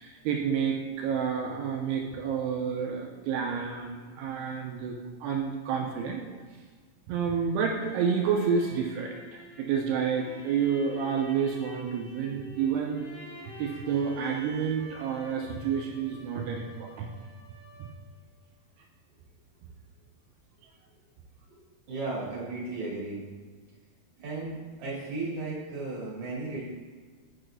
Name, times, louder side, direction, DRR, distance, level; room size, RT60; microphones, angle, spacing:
voice 1, 0.0-4.9 5.2-6.2 7.1-13.1 13.6-17.1 17.8-17.9, right 6 dB, 85° right, 1 dB, 2.6 m, -29 dB
sound 1, 7.5-18.1, right 1 dB, 70° left, 3.8 m, -48 dB
voice 2, 21.9-23.2 24.2-26.6, right 3 dB, 40° right, -7 dB, 2.7 m, -35 dB
8.4 x 6.3 x 2.6 m, 1.5 s
omnidirectional pair, 4.7 m